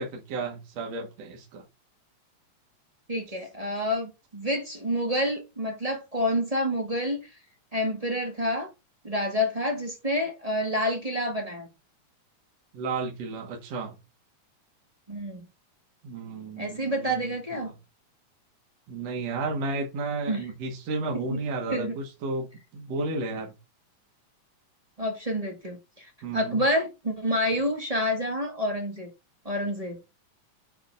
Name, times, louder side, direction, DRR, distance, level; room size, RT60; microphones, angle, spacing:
voice 1, 0.0-1.6 12.7-14.0 16.0-17.7 18.9-23.5 26.2-26.6, right 3 dB, 60° right, 2.7 m, -33 dB
voice 2, 3.1-7.2 7.7-8.7 9.0-11.7 15.1-15.4 16.6-17.7 20.3-20.4 21.3-21.4 21.7-21.9 25.0-26.0 26.3-29.1 29.4-30.0, equal, 15° right, 1.4 m, -28 dB
9.0 x 4.1 x 5.3 m
omnidirectional pair, 3.5 m